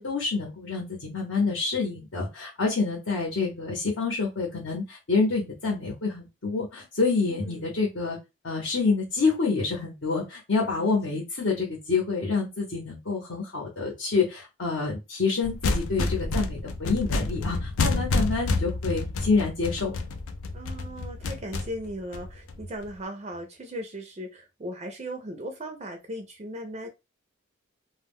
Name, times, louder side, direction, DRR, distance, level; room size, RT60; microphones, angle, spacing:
voice 1, 0.0-8.2 8.4-20.0, left 4 dB, 65° left, 0.8 m, -27 dB
voice 2, 7.2-7.7 10.6-10.9 11.5-11.6 20.5-26.9, equal, 30° right, 0.4 m, -38 dB
sound 1, 15.4-22.9, left 3 dB, 80° left, 0.4 m, -29 dB
2.1 x 2.0 x 3.5 m
head